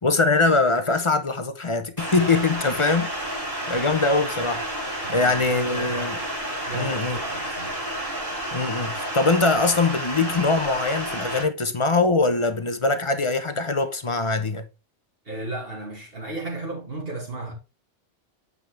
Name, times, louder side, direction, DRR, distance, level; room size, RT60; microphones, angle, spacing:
voice 1, 0.0-4.7 5.1-6.2 6.7-7.2 8.5-14.7, left 3 dB, 30° left, 0.8 m, -22 dB
sound 1, 2.0-11.4, right 1 dB, 30° right, 2.9 m, -30 dB
voice 2, 5.0-6.2 6.7-7.8 15.2-17.5, right 2 dB, 55° right, 2.5 m, -35 dB
8.2 x 5.4 x 3.3 m
omnidirectional pair, 1.2 m